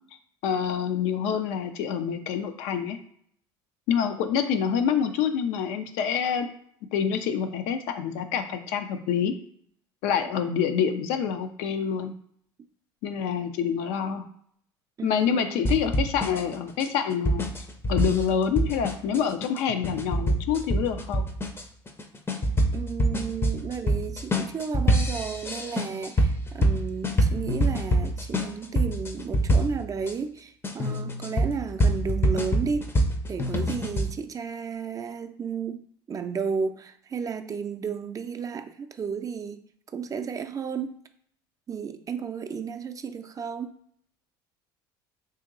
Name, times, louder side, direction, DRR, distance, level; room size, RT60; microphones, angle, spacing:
voice 1, 0.4-3.0 3.9-6.5 6.9-9.3 10.0-12.1 13.0-14.2 15.0-17.5 17.9-21.3, left 7 dB, 70° left, 8 dB, 0.4 m, -26 dB
voice 2, 15.0-15.8 22.7-32.9 33.3-35.8 36.1-39.6 39.9-41.0 41.7-43.7, right 6 dB, 30° right, 7 dB, 0.4 m, -33 dB
sound 1, 15.6-30.1 30.6-34.1, equal, 20° left, 0.5 m, -26 dB
2.9 x 2.7 x 3.7 m, 0.64 s
hypercardioid pair, 75°, 11 cm